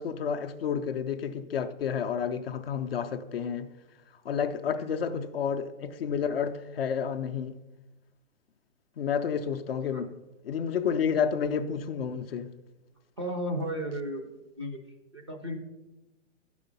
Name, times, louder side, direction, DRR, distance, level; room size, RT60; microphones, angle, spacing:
voice 1, 0.0-3.7 4.2-7.6 9.0-10.1 10.4-12.5, left 7 dB, 50° left, 0.5 m, -30 dB
voice 2, 4.7-5.2 9.9-10.0 13.2-14.3 14.6-14.8 15.1-15.6, equal, 25° right, 0.4 m, -34 dB
11.0 x 4.9 x 5.3 m
hypercardioid pair, 165°, 38 cm